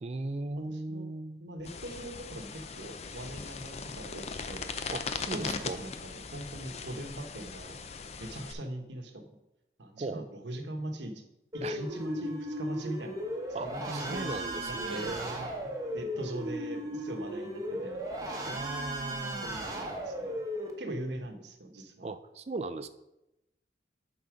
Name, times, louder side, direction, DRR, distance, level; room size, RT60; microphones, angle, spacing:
voice 1, 0.0-1.4 4.9-5.8 10.0-10.3 11.6-11.8 13.5-15.5 18.4-19.6 22.0-22.9, right 2 dB, 35° right, 11 dB, 0.4 m, -38 dB
voice 2, 0.7-1.1 1.4-4.7 5.3-7.8 8.2-9.2 9.8-11.2 11.5-13.2 13.6-14.3 14.7-15.2 15.6-18.2 19.4-20.4 20.8-22.1, right 1 dB, 85° right, 5 dB, 1.0 m, -41 dB
sound 1, 1.6-8.5, left 5 dB, 40° left, 0.5 m, -39 dB
sound 2, 11.5-20.7, equal, 20° right, 1.1 m, -36 dB
9.3 x 4.0 x 5.0 m, 0.92 s
head